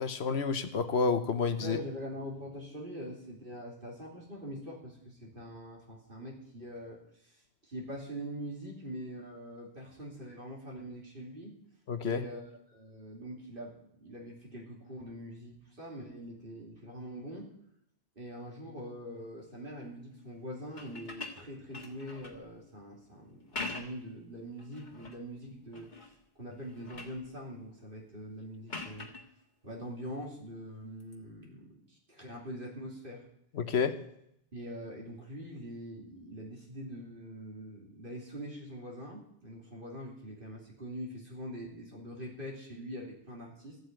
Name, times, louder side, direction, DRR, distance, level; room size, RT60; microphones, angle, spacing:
voice 1, 0.0-1.8 11.9-12.2 33.5-33.9, left 5 dB, 85° left, 9 dB, 1.2 m, -29 dB
voice 2, 1.6-11.5 12.0-17.5 18.1-26.1 26.3-29.1 29.6-33.2 34.5-43.8, equal, 55° right, -2 dB, 3.1 m, -43 dB
sound 1, 20.7-22.4 23.3-24.1 24.6-25.2 25.7-26.2 26.5-27.2 28.7-29.3 31.0-31.1, left 3 dB, 45° left, 1.7 m, -43 dB
14.0 x 8.0 x 9.0 m, 0.74 s
omnidirectional pair, 1.1 m